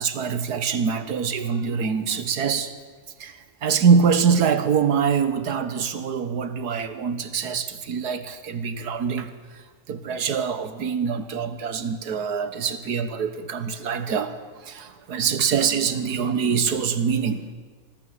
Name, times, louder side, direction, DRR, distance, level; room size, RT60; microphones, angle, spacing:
voice 1, 0.0-2.7 3.2-9.6 9.9-17.5, right 6 dB, 90° right, 12 dB, 1.8 m, -24 dB
25.0 x 13.5 x 8.9 m, 1.5 s
omnidirectional pair, 1.6 m